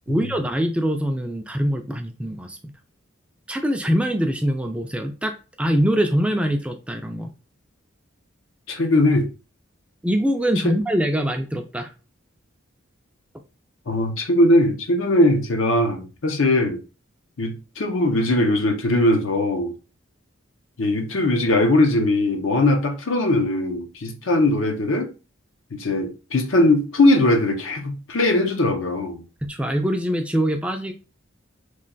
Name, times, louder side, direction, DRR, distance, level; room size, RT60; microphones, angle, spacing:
voice 1, 0.1-2.6 3.5-7.3 10.0-11.9 29.4-30.9, equal, 5° right, 0.3 m, -23 dB
voice 2, 8.7-9.3 10.6-10.7 13.9-16.8 17.4-19.7 20.8-25.1 25.7-29.2, left 1 dB, 75° left, 0.7 m, -20 dB
3.1 x 2.2 x 3.9 m
head